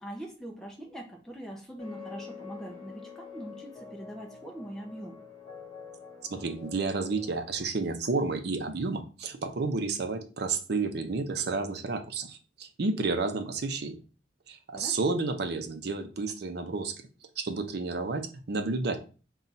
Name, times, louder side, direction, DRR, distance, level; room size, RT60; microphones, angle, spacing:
voice 1, 0.0-5.2 14.7-15.2, right 1 dB, 5° left, -1 dB, 0.5 m, -42 dB
sound 1, 1.8-7.6, left 6 dB, 25° left, 1.8 m, -47 dB
voice 2, 6.3-14.0 14.5-16.9 17.4-19.0, right 3 dB, 60° right, 6 dB, 0.6 m, -31 dB
4.1 x 2.3 x 3.9 m, 0.36 s
head